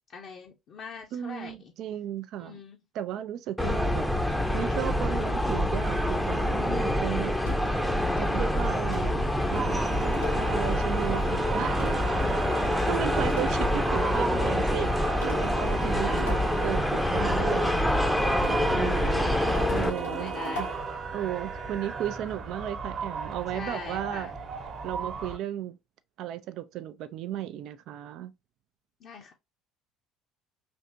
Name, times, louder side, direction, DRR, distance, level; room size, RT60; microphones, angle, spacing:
voice 1, 0.1-1.7 2.4-2.8 7.9-8.5 12.0-12.3 12.6-12.7 15.9-16.3 18.9-19.4 20.2-20.7 23.5-24.4 29.0-29.3, left 5 dB, 50° left, 0.7 m, -43 dB
voice 2, 1.1-2.6 2.9-7.4 7.7-7.9 8.2-11.8 12.9-20.7 21.1-24.3 24.8-25.8 26.2-28.3, right 11 dB, 55° right, 0.3 m, -35 dB
sound 1, 3.6-19.9, left 1 dB, 5° left, 0.6 m, -26 dB
sound 2, 7.4-7.8 8.9-10.6 11.8-13.7 15.2-16.7 18.4-21.0, left 1 dB, 85° left, 1.7 m, -39 dB
sound 3, 9.5-25.4, right 5 dB, 40° right, 0.9 m, -35 dB
3.4 x 2.8 x 2.6 m
hypercardioid pair, 60°, 0 cm